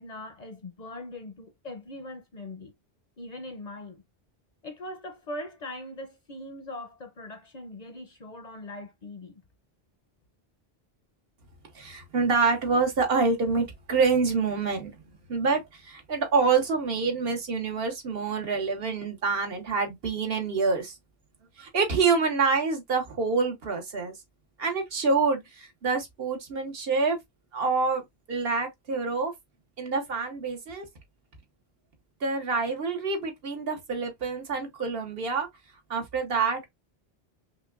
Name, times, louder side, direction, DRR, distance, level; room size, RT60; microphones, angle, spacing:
voice 1, 0.0-2.7 3.2-4.0 4.6-9.4, left 1 dB, 50° left, 0.6 m, -41 dB
voice 2, 11.7-21.0 21.6-24.1 24.6-27.2 27.5-28.0 28.3-29.3 29.8-30.9 32.2-35.5 35.9-36.7, right 4 dB, 65° right, 1.2 m, -26 dB
5.5 x 2.2 x 2.4 m
omnidirectional pair, 1.1 m